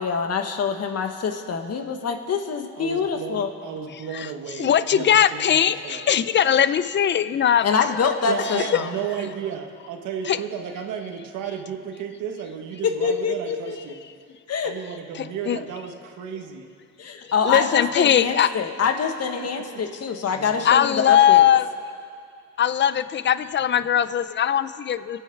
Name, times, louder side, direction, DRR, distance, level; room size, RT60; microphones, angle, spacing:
voice 1, 0.0-3.5 7.6-8.9 12.8-13.8 14.5-14.7 17.0-21.5, left 6 dB, 55° left, 6 dB, 1.5 m, -25 dB
voice 2, 2.8-6.0 8.2-14.0 14.6-16.7 19.4-19.8 20.3-20.8, right 8 dB, 85° right, 4 dB, 1.5 m, -34 dB
voice 3, 4.6-7.9 8.4-8.8 10.3-10.4 15.1-15.6 17.4-18.5 20.6-21.7 22.6-25.2, left 9 dB, 40° left, 14 dB, 0.6 m, -20 dB
26.5 x 9.1 x 4.6 m, 2.3 s
cardioid pair, 90°, 30 cm